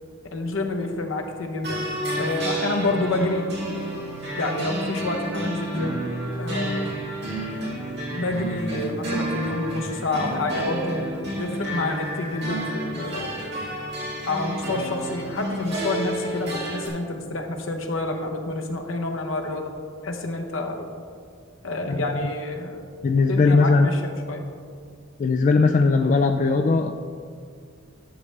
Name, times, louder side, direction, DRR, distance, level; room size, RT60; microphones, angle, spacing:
voice 1, 0.3-1.8 2.2-3.4 4.4-6.1 6.4-7.0 8.1-13.5 14.3-19.7 20.0-20.9 21.6-22.9 23.3-24.5, left 2 dB, 75° left, 4 dB, 0.9 m, -28 dB
sound 1, 1.6-16.9, right 1 dB, 55° right, 1.9 m, -30 dB
voice 2, 23.0-23.9 25.2-26.9, left 3 dB, 40° left, 5 dB, 0.3 m, -19 dB
10.5 x 6.5 x 3.3 m, 2.1 s
head